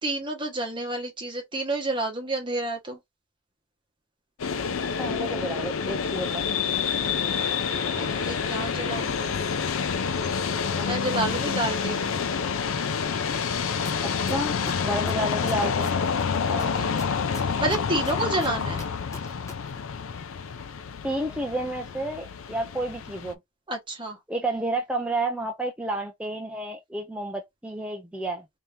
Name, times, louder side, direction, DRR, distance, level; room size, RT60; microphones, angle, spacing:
voice 1, 0.0-3.0 8.0-9.4 10.8-12.1 16.5-17.0 17.4-18.8 23.7-24.2, right 2 dB, 20° right, 1.2 m, -30 dB
sound 1, 4.4-23.3, left 6 dB, 70° left, 0.4 m, -28 dB
voice 2, 5.0-6.4 10.7-10.9 14.2-14.6 14.8-15.9 21.0-23.4 24.3-28.4, right 1 dB, 5° right, 0.4 m, -30 dB
sound 2, 13.8-13.9 14.3-16.2 16.6-19.5 19.8-19.9, left 2 dB, 15° left, 0.9 m, -39 dB
2.8 x 2.8 x 3.4 m
head